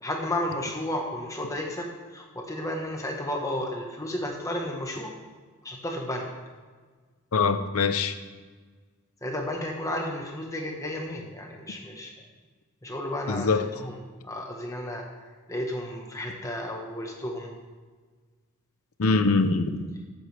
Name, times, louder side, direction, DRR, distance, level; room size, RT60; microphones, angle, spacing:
voice 1, 0.0-5.1 5.6-6.3 9.2-12.1 12.8-14.0 14.2-17.5, left 1 dB, 15° left, 1 dB, 1.3 m, -33 dB
voice 2, 7.3-8.1 13.3-13.7 19.0-19.8, left 4 dB, 80° left, 10 dB, 0.7 m, -23 dB
14.0 x 8.1 x 3.4 m, 1.4 s
head